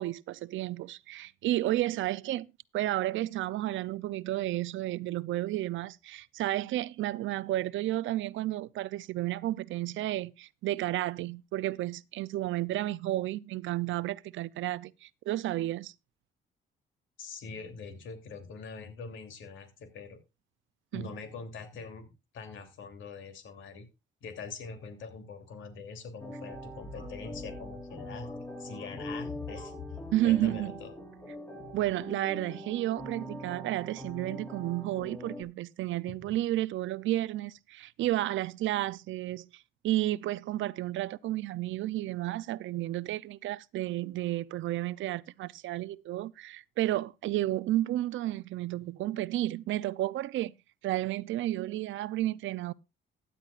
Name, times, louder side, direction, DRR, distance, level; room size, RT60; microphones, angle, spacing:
voice 1, 0.0-2.5 2.7-15.9 20.9-21.1 30.1-30.7 31.7-50.5 50.8-52.7, right 15 dB, 75° right, 0.5 m, -32 dB
voice 2, 17.2-20.2 20.9-23.9 24.2-28.3 28.6-29.7 30.2-30.9, left 4 dB, 75° left, 2.9 m, -43 dB
sound 1, 26.2-35.4, left 1 dB, 10° left, 2.9 m, -43 dB
sound 2, 26.5-31.9, left 4 dB, 35° left, 5.0 m, -47 dB
15.5 x 10.0 x 2.4 m
cardioid pair, 90°, 20 cm